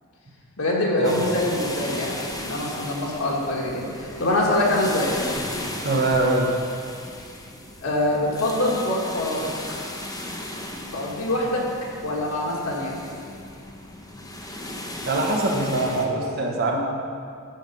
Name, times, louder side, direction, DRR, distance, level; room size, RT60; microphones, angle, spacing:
voice 1, 0.6-2.1 2.4-5.2 7.8-9.5 10.9-11.7 12.0-12.9, left 1 dB, 70° left, -3 dB, 1.9 m, -24 dB
sound 1, 1.0-16.1, left 1 dB, 15° left, 0.8 m, -35 dB
voice 2, 5.8-6.6 15.1-16.8, right 2 dB, 50° right, 0 dB, 1.2 m, -23 dB
13.0 x 4.9 x 5.4 m, 2.3 s
head